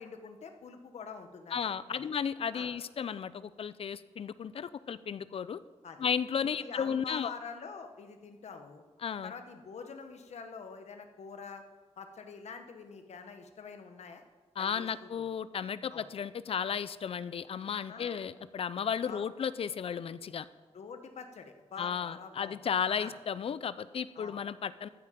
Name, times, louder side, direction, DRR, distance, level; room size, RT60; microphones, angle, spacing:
voice 1, 0.0-1.6 1.9-2.1 2.5-2.7 5.8-6.0 6.5-8.8 9.2-11.6 12.0-14.2 14.6-15.2 15.9-16.1 17.7-18.2 19.1-19.2 20.7-22.6 23.0-23.2 24.1-24.4, left 5 dB, 75° left, 6 dB, 1.2 m, -46 dB
voice 2, 1.5-5.6 6.0-7.3 9.0-9.3 14.6-20.5 21.8-24.9, left 7 dB, 55° left, 16 dB, 0.4 m, -34 dB
14.5 x 8.5 x 5.1 m, 1.4 s
wide cardioid pair, 180°, 12 cm